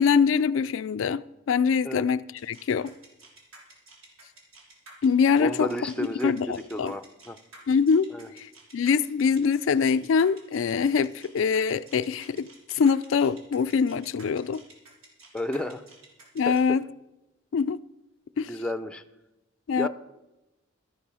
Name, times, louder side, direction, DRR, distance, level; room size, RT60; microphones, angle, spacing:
voice 1, 0.0-2.9 5.0-5.7 6.2-6.9 7.7-8.1 8.4-14.6 16.4-16.9 17.5-17.8 18.4-18.5 19.7-19.9, left 6 dB, 70° left, 0.4 m, -24 dB
sound 1, 2.4-16.6, right 2 dB, 80° right, 3.8 m, -51 dB
voice 2, 5.4-7.4 8.1-8.3 15.3-15.8 16.4-16.8 18.4-19.0 19.8-19.9, left 1 dB, 5° left, 0.5 m, -32 dB
13.5 x 10.0 x 5.5 m
head